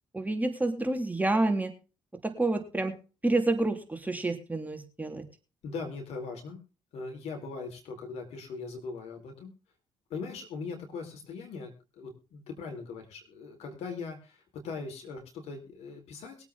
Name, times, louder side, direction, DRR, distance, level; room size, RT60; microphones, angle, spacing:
voice 1, 0.1-1.7 2.2-3.0 3.2-5.3, right 2 dB, 15° right, 5 dB, 3.5 m, -28 dB
voice 2, 5.6-6.6 6.9-9.5 10.1-16.4, left 4 dB, 70° left, 3 dB, 4.3 m, -40 dB
22.5 x 8.3 x 3.8 m, 0.34 s
hypercardioid pair, 45°, 11 cm